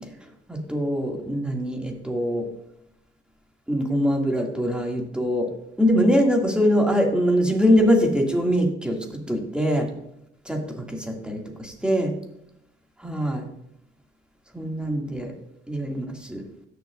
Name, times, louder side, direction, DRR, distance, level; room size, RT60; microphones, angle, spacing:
voice 1, 0.5-2.5 3.7-5.5 5.8-9.9 10.5-12.1 13.0-13.4 14.5-15.3 15.7-16.4, equal, 5° right, 1 dB, 2.3 m, -23 dB
17.0 x 6.9 x 2.5 m, 0.79 s
cardioid pair, 90°, 20 cm